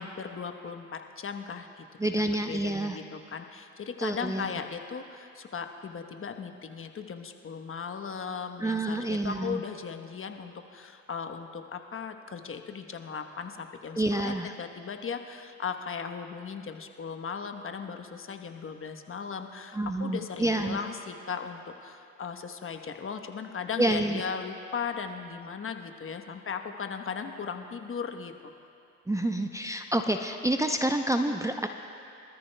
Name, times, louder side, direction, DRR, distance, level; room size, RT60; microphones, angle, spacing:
voice 1, 0.0-1.9 2.4-28.5, left 6 dB, 35° left, 6 dB, 1.1 m, -37 dB
voice 2, 2.0-3.0 4.0-4.5 8.6-9.6 14.0-14.5 19.7-20.8 23.8-24.2 29.1-31.7, right 1 dB, 10° right, 5 dB, 0.6 m, -28 dB
25.5 x 13.5 x 2.3 m, 2.6 s
hypercardioid pair, 60°, 38 cm